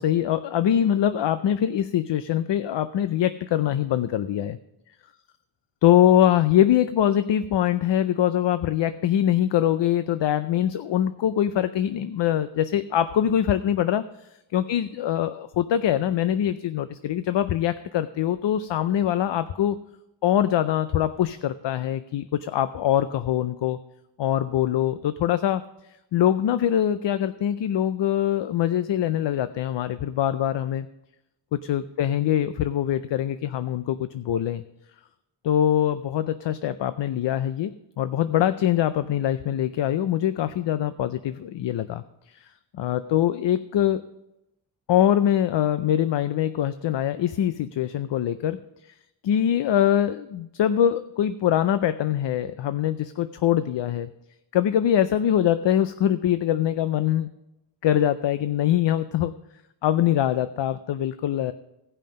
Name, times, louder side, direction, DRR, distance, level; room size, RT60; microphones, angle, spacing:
voice 1, 0.0-4.6 5.8-14.1 14.5-19.8 20.2-23.8 24.2-25.7 26.1-30.9 31.7-34.6 35.4-42.5 42.7-44.0 44.9-48.6 49.2-54.1 54.5-57.3 57.8-59.3 59.8-61.5, left 11 dB, 65° left, 12 dB, 0.5 m, -23 dB
16.5 x 5.6 x 5.2 m, 0.90 s
wide cardioid pair, 155°, 46 cm